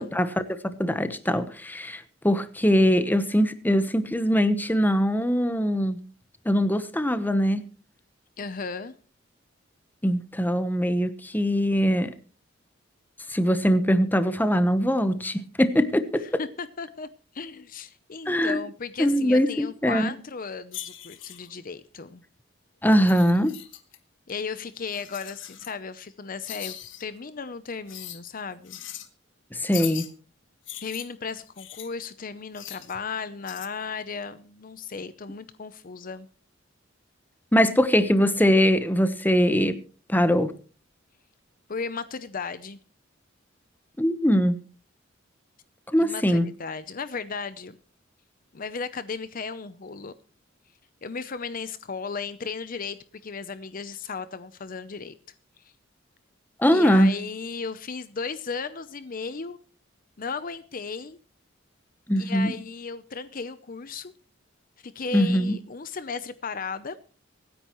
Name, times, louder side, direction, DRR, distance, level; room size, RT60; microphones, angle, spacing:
voice 1, 0.0-6.0 6.4-7.6 10.0-12.1 13.3-16.2 18.3-18.6 19.0-20.1 22.8-23.5 29.5-30.0 37.5-39.8 40.1-40.5 44.0-44.6 45.9-46.5 56.6-57.1 62.1-62.5 65.1-65.5, equal, 10° left, 11 dB, 1.0 m, -22 dB
voice 2, 8.4-8.9 16.4-22.2 24.3-28.8 30.8-36.3 41.7-42.8 46.0-47.8 48.5-50.1 51.0-55.1 55.6-55.7 56.7-59.6 60.2-61.2 62.2-64.1 64.8-67.0, left 5 dB, 45° left, 14 dB, 0.7 m, -35 dB
sound 1, 20.7-21.5 22.9-24.0 24.9-25.7 26.4-27.0 27.9-28.2 28.6-29.1 29.7-30.1 30.6-31.9 32.5-32.9 33.5-33.7, left 12 dB, 70° left, 1.3 m, -40 dB
24.5 x 10.0 x 3.1 m, 0.38 s
head